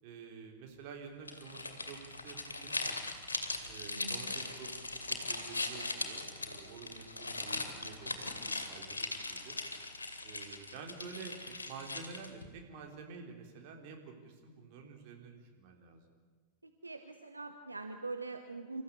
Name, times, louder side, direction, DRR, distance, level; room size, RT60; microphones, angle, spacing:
voice 1, 0.0-3.0 3.7-9.5 10.2-16.0, right 5 dB, 45° right, 2 dB, 4.0 m, -50 dB
sound 1, 1.2-12.4, left 3 dB, 75° left, 2.5 m, -40 dB
voice 2, 3.9-4.3 16.6-18.8, right 3 dB, 80° right, 6 dB, 1.2 m, -43 dB
27.5 x 14.5 x 8.5 m, 1.4 s
figure-of-eight pair, 90°, 0 cm